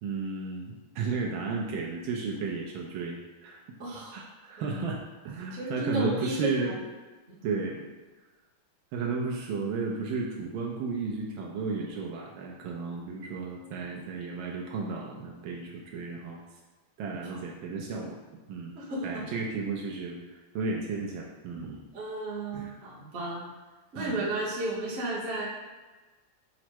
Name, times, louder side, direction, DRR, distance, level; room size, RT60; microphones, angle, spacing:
voice 1, 0.0-3.6 4.1-6.8 7.4-7.9 8.9-16.4 17.0-18.2 18.5-18.7 19.0-21.8 22.5-22.8 24.0-24.3, right 4 dB, 75° right, -1 dB, 1.3 m, -33 dB
voice 2, 3.8-4.2 4.6-4.9 5.5-6.5 7.3-7.4 17.2-17.4 18.7-19.3 21.9-23.4 23.9-25.5, right 2 dB, 45° right, -5 dB, 0.9 m, -33 dB
5.7 x 2.1 x 4.4 m, 1.2 s
omnidirectional pair, 2.4 m